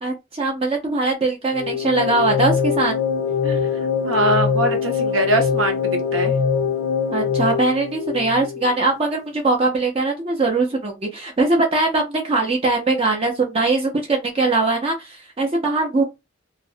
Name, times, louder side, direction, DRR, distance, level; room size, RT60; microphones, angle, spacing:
voice 1, 0.0-3.0 7.1-16.0, right 3 dB, 30° right, 0.5 m, -21 dB
sound 1, 1.5-8.8, left 6 dB, 70° left, 0.4 m, -23 dB
voice 2, 3.4-6.4, right 1 dB, 75° right, 0.8 m, -23 dB
2.4 x 2.0 x 2.6 m
head